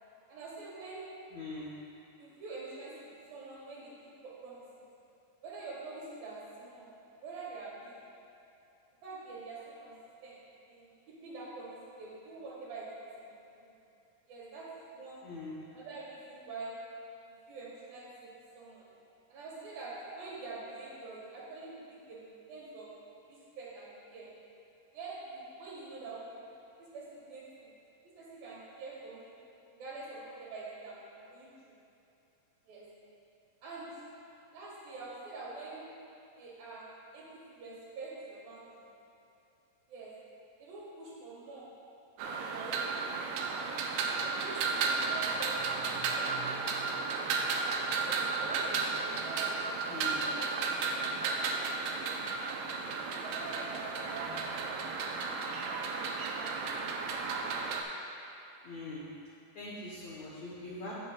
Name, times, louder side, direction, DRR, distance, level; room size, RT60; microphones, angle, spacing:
voice 1, 0.3-1.1 2.2-4.8 5.4-6.9 7.2-8.0 9.0-13.7 14.3-15.2 15.7-16.9 17.2-18.9 19.3-23.0 23.3-24.3 24.9-26.4 26.8-27.7 28.1-29.3 29.7-31.8 32.7-32.9 33.6-34.1 34.5-36.0 36.3-38.9 39.9-40.2 40.6-41.8 42.2-43.3 44.2-46.7 48.0-52.4 52.9-55.0 55.6-57.1, right 3 dB, 65° right, -5 dB, 3.2 m, -46 dB
voice 2, 1.3-1.7 15.2-15.6 49.9-50.2 58.6-59.1 59.5-60.9, left 2 dB, 80° left, -6 dB, 1.5 m, -42 dB
sound 1, 42.2-57.8, right 4 dB, 80° right, 2.7 m, -33 dB
16.0 x 6.9 x 2.3 m, 2.8 s
omnidirectional pair, 4.7 m